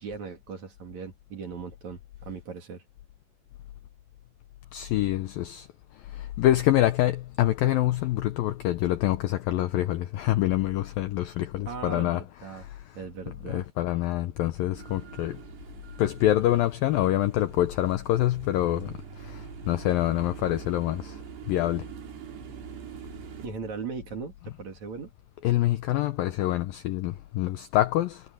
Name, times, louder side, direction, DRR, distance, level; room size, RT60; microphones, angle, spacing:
voice 1, 0.0-2.8 11.7-12.7 13.0-13.7 23.4-25.1, right 5 dB, 45° right, 3.6 m, -38 dB
voice 2, 4.7-5.7 6.4-12.2 12.5-12.6 13.5-15.4 16.0-18.9 19.3-19.4 19.7-21.1 21.5-21.8 25.4-28.2, left 14 dB, 90° left, 2.0 m, -25 dB
sound 1, 14.7-23.5, right 7 dB, 65° right, 5.2 m, -44 dB
omnidirectional pair, 5.2 m